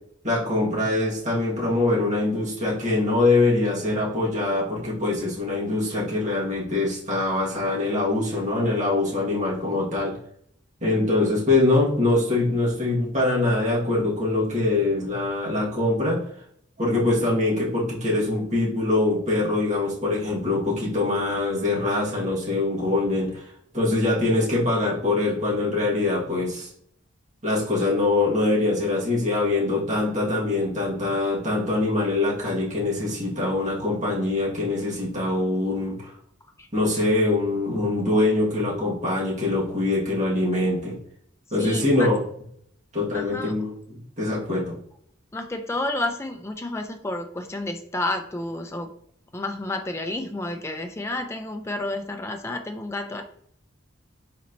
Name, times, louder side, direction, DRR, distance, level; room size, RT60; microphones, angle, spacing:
voice 1, 0.2-10.1 10.8-16.2 16.8-26.7 27.4-36.1 36.7-41.0 41.5-42.2 42.9-43.7 44.2-44.7, left 2 dB, 35° right, -6 dB, 1.7 m, -23 dB
voice 2, 41.6-42.1 43.1-43.6 45.3-48.9 49.3-53.2, left 2 dB, 15° left, 6 dB, 0.4 m, -30 dB
4.2 x 4.2 x 2.6 m, 0.66 s
head